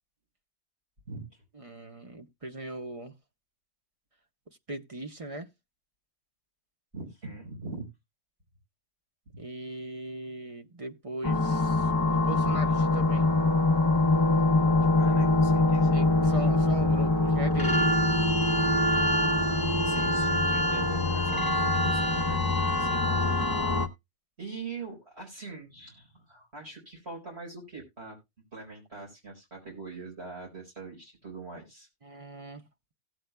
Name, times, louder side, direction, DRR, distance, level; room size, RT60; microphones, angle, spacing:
voice 1, 1.1-1.4 6.9-7.8 15.0-16.3 19.8-23.7 24.4-28.2 28.5-31.9, right 4 dB, 70° right, 4.6 m, -42 dB
voice 2, 1.6-3.1 4.7-5.5 9.4-13.3 15.9-18.0 32.0-32.6, right 1 dB, 35° right, 0.9 m, -39 dB
sound 1, 11.2-23.9, left 2 dB, 20° left, 1.0 m, -24 dB
17.0 x 7.8 x 2.2 m
omnidirectional pair, 1.1 m